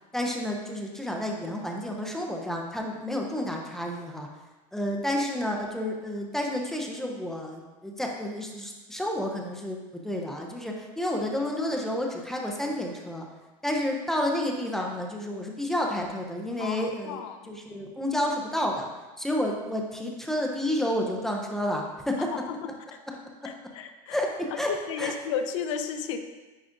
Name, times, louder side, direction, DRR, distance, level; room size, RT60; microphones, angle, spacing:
voice 1, 0.1-4.3 4.7-13.3 13.6-18.9 19.2-22.3 24.1-24.7 25.0-25.1, left 1 dB, ahead, 0 dB, 0.3 m, -30 dB
voice 2, 16.6-17.5 22.3-22.7 23.4-24.2 24.7-26.2, left 7 dB, 60° left, 7 dB, 0.5 m, -33 dB
9.3 x 4.7 x 2.5 m, 1.2 s
supercardioid pair, 175°, 17 cm